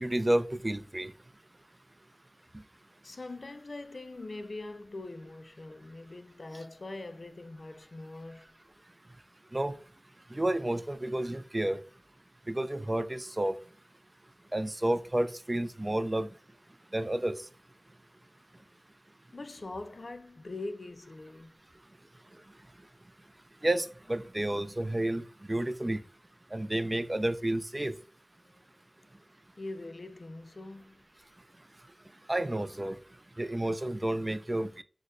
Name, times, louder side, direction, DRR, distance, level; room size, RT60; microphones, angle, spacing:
voice 1, 0.0-1.1 9.5-9.7 10.3-11.8 12.5-13.6 14.5-16.3 16.9-17.3 23.6-25.2 25.5-26.0 26.5-27.9 32.3-33.0 33.4-34.8, right 1 dB, 30° right, 0.3 m, -30 dB
voice 2, 3.0-8.5 19.3-21.6 29.6-31.1, left 2 dB, 60° left, 0.3 m, -42 dB
6.1 x 2.1 x 2.5 m
wide cardioid pair, 45°, 0 cm